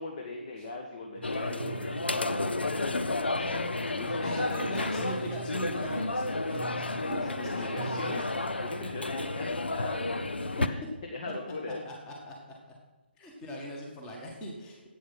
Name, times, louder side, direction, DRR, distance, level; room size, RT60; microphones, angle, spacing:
voice 1, 0.0-4.7 5.0-5.1 7.2-10.8 11.1-11.8, left 3 dB, 35° left, 1 dB, 1.6 m, -39 dB
sound 1, 1.1-3.1 4.1-8.2, right 6 dB, 45° right, 0.9 m, -43 dB
sound 2, 1.2-10.7, left 2 dB, 70° left, 0.8 m, -32 dB
voice 2, 4.2-7.9 10.4-10.5 11.8-12.4 13.2-14.9, equal, 15° left, 0 dB, 1.9 m, -40 dB
11.0 x 8.7 x 6.1 m, 1.2 s
figure-of-eight pair, 145°, 6 cm